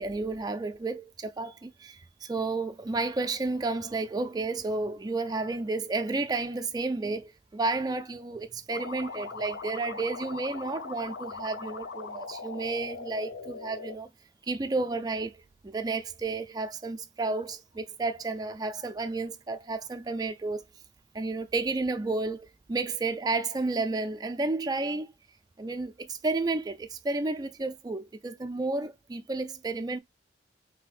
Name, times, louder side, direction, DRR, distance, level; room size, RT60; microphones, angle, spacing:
voice 1, 0.0-14.1 14.5-20.6 21.1-25.1 25.6-30.0, right 3 dB, 20° right, 0.3 m, -31 dB
sound 1, 8.7-13.9, left 4 dB, 85° left, 0.6 m, -40 dB
5.7 x 2.7 x 2.4 m
head